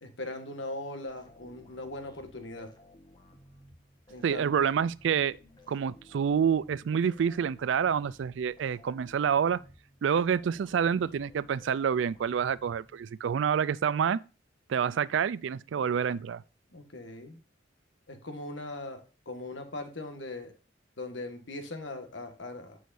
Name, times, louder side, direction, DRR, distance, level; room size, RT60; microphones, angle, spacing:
voice 1, 0.0-2.7 4.1-4.5 16.7-17.4 18.1-20.5 21.0-22.8, left 2 dB, 70° left, 1.6 m, -40 dB
sound 1, 1.1-13.3, left 1 dB, 25° left, 1.4 m, -56 dB
voice 2, 4.2-5.4 5.7-9.6 10.0-14.2 14.7-16.4, right 7 dB, 70° right, 0.3 m, -27 dB
9.3 x 6.4 x 2.6 m
head